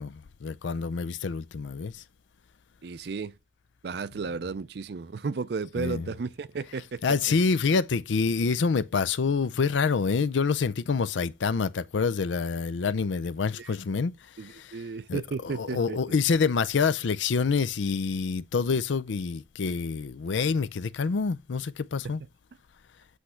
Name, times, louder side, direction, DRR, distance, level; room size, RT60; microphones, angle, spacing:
voice 1, 0.0-1.9 5.8-6.1 7.0-14.1 14.6-14.7 15.1-22.2, left 5 dB, 80° left, 0.5 m, -27 dB
voice 2, 2.8-3.4 3.8-7.0 13.5-13.7 14.4-16.0 22.0-22.1, right 4 dB, 60° right, 0.4 m, -34 dB
8.3 x 3.2 x 5.6 m
head